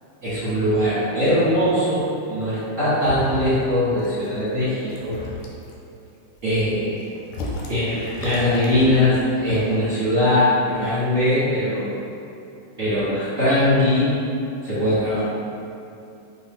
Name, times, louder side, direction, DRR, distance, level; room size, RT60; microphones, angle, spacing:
voice 1, 0.2-5.2 6.4-7.0 7.7-12.0 12.8-14.2 14.6-15.2, left 1 dB, 60° right, -14 dB, 0.7 m, -21 dB
sound 1, 3.0-3.7 4.0-4.4 4.8-5.7 6.3-9.8, left 2 dB, 75° left, 1.8 m, -35 dB
6.1 x 2.2 x 3.6 m, 2.7 s
omnidirectional pair, 3.6 m